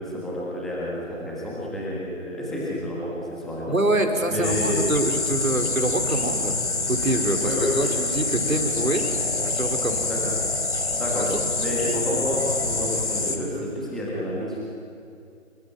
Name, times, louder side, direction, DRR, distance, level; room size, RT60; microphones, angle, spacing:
voice 1, 0.0-3.8 4.3-4.8 7.4-7.7 10.0-10.3 10.9-11.3 11.6-14.7, left 1 dB, ahead, -6 dB, 1.4 m, -30 dB
voice 2, 3.7-6.5 6.9-9.1 9.4-10.1, right 1 dB, 85° right, 4 dB, 4.4 m, -25 dB
sound 1, 4.4-13.4, left 3 dB, 55° left, 3.8 m, -26 dB
26.0 x 23.5 x 9.4 m, 2.5 s
figure-of-eight pair, 160°, 40 cm